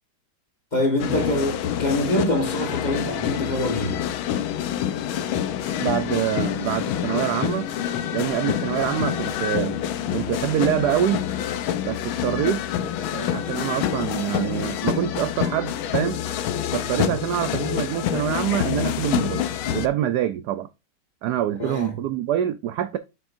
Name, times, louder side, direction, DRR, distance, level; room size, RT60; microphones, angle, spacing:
voice 1, 0.7-4.0 17.0-17.1 21.6-22.0, left 1 dB, 25° left, 1.5 m, -25 dB
sound 1, 1.0-19.9, left 10 dB, 80° left, 1.5 m, -27 dB
voice 2, 5.8-7.7 8.1-9.8 10.1-11.2 11.8-16.2 16.7-20.7 21.2-23.0, right 11 dB, 75° right, 0.9 m, -25 dB
8.0 x 6.1 x 2.5 m
omnidirectional pair, 2.3 m